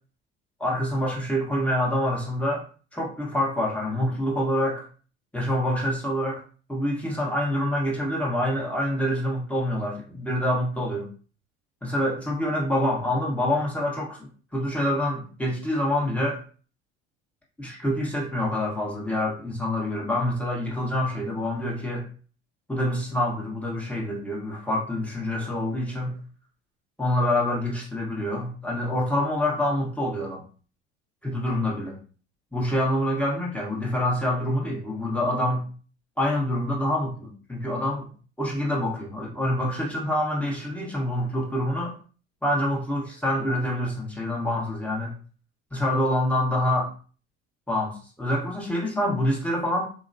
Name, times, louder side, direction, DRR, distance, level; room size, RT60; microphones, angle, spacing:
voice 1, 0.6-2.6 2.9-4.9 5.3-6.4 6.7-11.1 11.8-16.4 17.6-22.1 22.7-26.2 27.0-30.4 31.2-32.0 32.5-35.7 36.2-38.1 38.4-41.9 42.4-45.1 45.7-46.9 47.7-49.9, left 1 dB, 5° left, -3 dB, 1.2 m, -26 dB
2.9 x 2.2 x 2.6 m, 0.39 s
hypercardioid pair, 75°, 34 cm